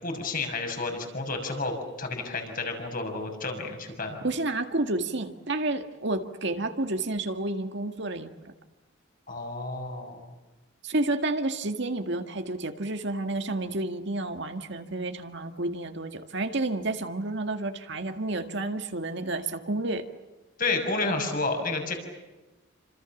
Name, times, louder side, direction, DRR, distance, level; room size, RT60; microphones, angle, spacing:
voice 1, 0.0-4.3 9.3-10.3 20.6-22.0, left 3 dB, 45° left, 4 dB, 6.3 m, -31 dB
voice 2, 4.2-8.5 10.8-20.0, right 2 dB, 60° right, 6 dB, 2.0 m, -30 dB
29.0 x 26.5 x 7.3 m, 1.1 s
head